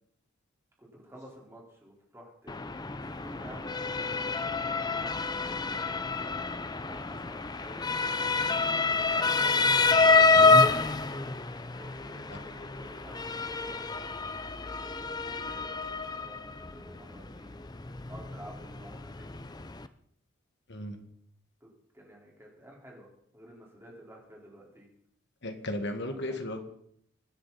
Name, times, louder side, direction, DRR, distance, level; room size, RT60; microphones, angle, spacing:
voice 1, 0.8-6.3 6.9-10.8 11.7-14.0 14.6-17.6 18.1-19.7 21.6-21.7 21.9-23.1 23.3-24.9 26.0-26.5, right 1 dB, 10° right, -3 dB, 4.6 m, -51 dB
Motor vehicle (road) / Siren, 2.5-19.9, left 4 dB, 20° left, 0.6 m, -28 dB
voice 2, 25.4-26.6, left 1 dB, 55° left, 6 dB, 2.0 m, -35 dB
25.5 x 10.0 x 4.3 m, 0.68 s
head